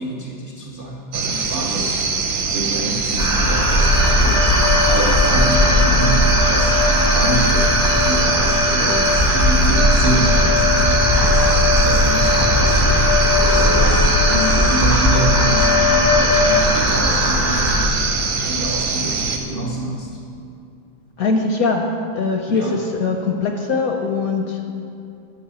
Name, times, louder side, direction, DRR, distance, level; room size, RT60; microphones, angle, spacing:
voice 1, 0.0-2.2 2.4-13.0 13.4-17.9 18.4-20.2 22.5-22.8, right 1 dB, 85° right, -1 dB, 0.4 m, -27 dB
sound 1, 1.1-19.4, right 4 dB, 70° right, 1.8 m, -23 dB
sound 2, 3.2-17.9, left 1 dB, 25° left, 0.5 m, -18 dB
sound 3, 3.7-16.7, left 6 dB, 85° left, 1.5 m, -23 dB
voice 2, 21.2-21.9 22.1-24.6, left 4 dB, 65° left, 3 dB, 0.9 m, -21 dB
12.0 x 6.1 x 6.9 m, 2.5 s
omnidirectional pair, 2.3 m